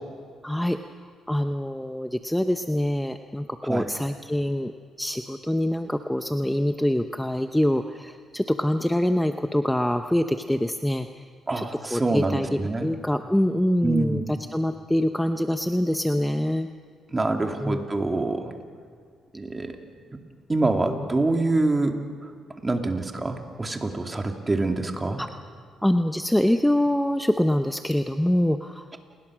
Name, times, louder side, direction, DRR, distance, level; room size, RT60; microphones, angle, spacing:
voice 1, 0.4-0.8 1.3-4.7 5.0-11.2 11.5-11.6 11.9-16.7 17.6-18.2 20.8-21.1 25.2-25.3 25.8-28.9, left 1 dB, 5° left, 7 dB, 0.8 m, -25 dB
voice 2, 11.5-12.9 13.8-14.3 17.1-18.5 19.3-19.7 20.5-22.0 22.6-25.2, right 2 dB, 20° right, 4 dB, 2.6 m, -25 dB
29.0 x 21.0 x 6.3 m, 2.1 s
cardioid pair, 90°, 0 cm